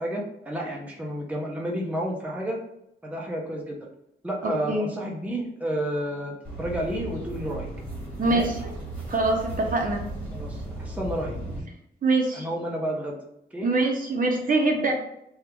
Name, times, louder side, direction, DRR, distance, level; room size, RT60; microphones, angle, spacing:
voice 1, 0.0-2.6 3.0-3.8 4.2-7.7 8.3-8.5 10.3-11.4 12.3-13.2 13.5-13.7, right 1 dB, 10° right, -2 dB, 0.6 m, -31 dB
sound 1, 6.4-11.6, right 1 dB, 10° left, 1.3 m, -36 dB
voice 2, 8.2-8.5 9.1-10.0 12.0-12.5 13.6-14.9, right 2 dB, 50° right, 2 dB, 0.7 m, -23 dB
3.4 x 2.4 x 4.4 m, 0.79 s
wide cardioid pair, 155°, 18 cm